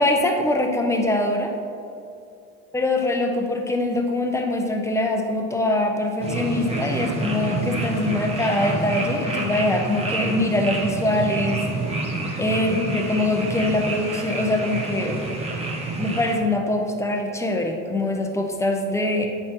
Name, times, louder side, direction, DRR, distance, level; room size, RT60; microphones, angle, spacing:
voice 1, 0.0-1.5 2.7-11.6 12.4-15.2 15.9-19.3, left 1 dB, 5° left, 3 dB, 0.4 m, -23 dB
sound 1, 6.2-16.4, right 2 dB, 15° right, 0.9 m, -28 dB
9.1 x 5.5 x 2.9 m, 2.6 s
cardioid pair, 130°, 41 cm